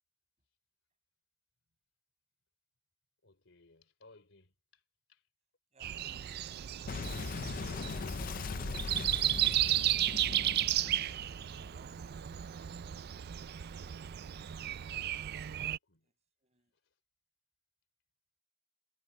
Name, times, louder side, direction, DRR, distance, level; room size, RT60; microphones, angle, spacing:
voice 1, 3.2-4.8 5.1-5.3 13.7-14.3 15.4-16.1 16.7-17.0, left 2 dB, 70° left, 3.8 m, -65 dB
voice 2, 5.7-8.6 11.7-12.3 16.0-16.1 16.4-16.7, right 2 dB, 35° right, 6.9 m, -66 dB
Breathing, 5.8-15.8, right 12 dB, 55° right, 0.4 m, -34 dB
Boom, 6.9-12.1, left 4 dB, 45° left, 0.5 m, -40 dB
head